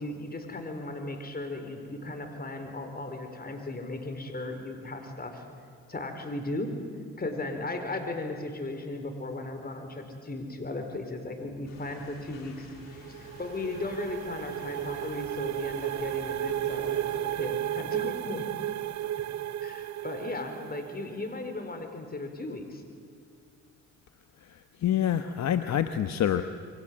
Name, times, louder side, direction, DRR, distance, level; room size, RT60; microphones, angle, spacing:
voice 1, 0.0-5.4 5.9-6.8 7.2-18.5 19.6-22.8, left 2 dB, 30° left, 6 dB, 4.5 m, -36 dB
sound 1, 11.6-17.2, left 3 dB, 80° left, 7.7 m, -50 dB
sound 2, 12.7-21.4, right 12 dB, 60° right, 0.7 m, -33 dB
voice 2, 24.5-26.4, left 10 dB, 55° left, 9 dB, 1.2 m, -27 dB
28.0 x 24.0 x 7.7 m, 2.1 s
supercardioid pair, 70°, 32 cm